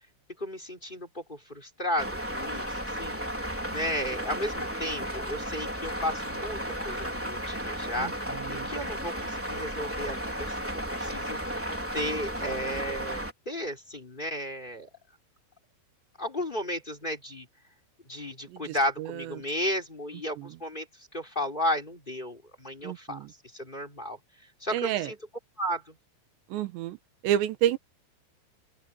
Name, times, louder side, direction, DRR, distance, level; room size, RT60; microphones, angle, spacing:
voice 1, 0.4-3.2 3.7-6.6 6.8-8.1 8.5-11.7 11.9-14.9 16.2-17.5 18.1-20.8 21.1-23.2 23.5-24.2 24.6-25.2 25.6-25.9, equal, 10° left, 3.0 m, -34 dB
sound 1, 2.0-13.3, equal, 5° right, 3.4 m, -34 dB
voice 2, 8.0-8.7 18.5-19.4 20.4-20.6 22.8-23.3 24.7-25.1 26.5-27.0 27.2-27.8, right 11 dB, 85° right, 3.4 m, -30 dB
open air
omnidirectional pair, 4.9 m